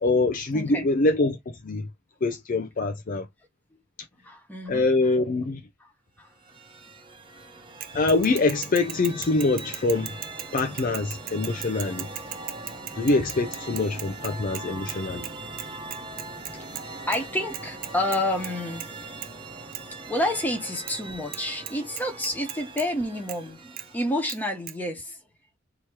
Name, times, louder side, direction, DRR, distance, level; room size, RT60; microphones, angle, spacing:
voice 1, 0.0-1.9 2.2-3.3 4.7-5.6 7.9-10.2 10.5-12.1 13.0-15.3, left 3 dB, 45° left, 0.4 m, -24 dB
voice 2, 0.5-0.9 4.2-4.8 5.8-5.9 6.2-6.3 12.7-13.0 16.8-18.8 20.0-25.2, left 1 dB, 10° left, 1.2 m, -29 dB
sound 1, 6.2-24.4, right 2 dB, 25° right, 0.9 m, -41 dB
Bicycle / Mechanisms, 7.8-15.0 15.2-15.3 15.6-16.8 17.1-17.2 17.5-18.5 18.8-19.0 19.2-19.3 19.7-19.8 20.9-21.0 21.3-21.4 21.7-22.9 23.3-23.4 23.8-23.9 24.3-24.4 24.7-24.8, right 12 dB, 45° right, 0.5 m, -37 dB
3.1 x 2.9 x 4.6 m
head